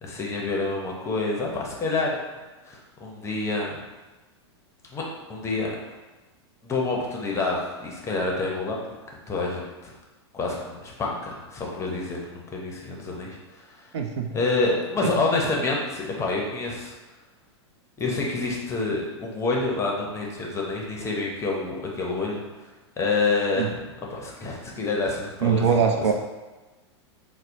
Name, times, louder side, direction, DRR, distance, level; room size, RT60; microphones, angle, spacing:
voice 1, 0.0-2.2 2.6-3.8 4.9-5.0 5.3-5.7 6.6-8.8 9.3-9.9 10.3-13.9 14.3-16.9 18.0-22.4 23.0-25.6, left 3 dB, 20° left, -1 dB, 0.6 m, -27 dB
voice 2, 13.9-14.3 15.0-15.1 23.6-23.7 25.4-26.1, right 6 dB, 85° right, 3 dB, 0.5 m, -22 dB
4.1 x 2.0 x 2.6 m, 1.2 s
hypercardioid pair, 120°, 14 cm